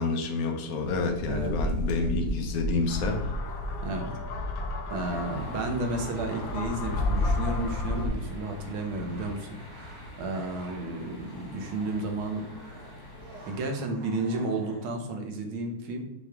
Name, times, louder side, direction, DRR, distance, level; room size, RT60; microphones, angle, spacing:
voice 1, 0.0-3.2, left 3 dB, 55° left, 3 dB, 1.2 m, -29 dB
sound 1, 0.8-8.1, left 2 dB, 70° left, 1.6 m, -31 dB
voice 2, 1.3-1.7 3.8-4.1 4.9-12.5 13.5-16.1, right 2 dB, 75° right, 4 dB, 1.8 m, -32 dB
sound 2, 4.8-15.0, right 2 dB, 60° right, 2.1 m, -50 dB
sound 3, 5.0-13.6, left 1 dB, 20° left, 0.7 m, -46 dB
6.4 x 5.3 x 3.5 m, 0.95 s
omnidirectional pair, 2.3 m